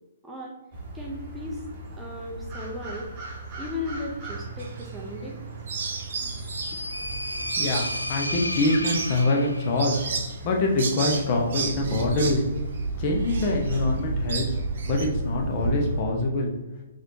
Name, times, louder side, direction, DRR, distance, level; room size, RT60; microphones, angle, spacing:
sound 1, 0.7-16.0, right 2 dB, 30° right, 0.9 m, -34 dB
voice 1, 0.9-1.6 2.0-3.1 3.6-5.4, left 2 dB, 5° right, -3 dB, 0.6 m, -36 dB
sound 2, 4.6-5.4 5.7-15.1, right 5 dB, 50° right, 0.5 m, -33 dB
sound 3, 6.1-9.9, left 1 dB, 85° left, 0.4 m, -33 dB
voice 2, 7.6-10.0 10.4-12.5 13.0-14.6 14.8-16.5, left 2 dB, 35° left, 1 dB, 0.7 m, -25 dB
4.0 x 3.1 x 2.6 m, 1.1 s
figure-of-eight pair, 125°, 0 cm